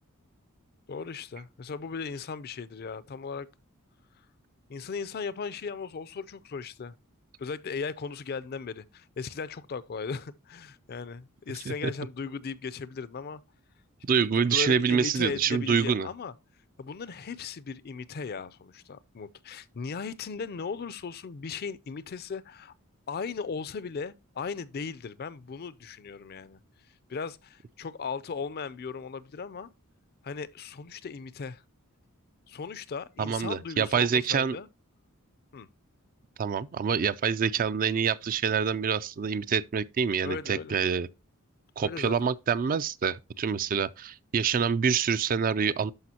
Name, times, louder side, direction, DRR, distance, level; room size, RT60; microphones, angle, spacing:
voice 1, 0.9-3.5 4.7-6.9 7.4-13.4 14.1-16.3 16.8-22.7 23.1-26.6 27.1-29.7 30.2-31.6 32.5-34.7 35.5-35.7 40.2-40.8 41.8-42.3, left 5 dB, 45° left, 0.4 m, -37 dB
voice 2, 14.0-16.1 33.2-34.6 36.4-41.1 41.8-45.9, right 6 dB, 40° right, 0.4 m, -26 dB
12.0 x 5.0 x 2.8 m
head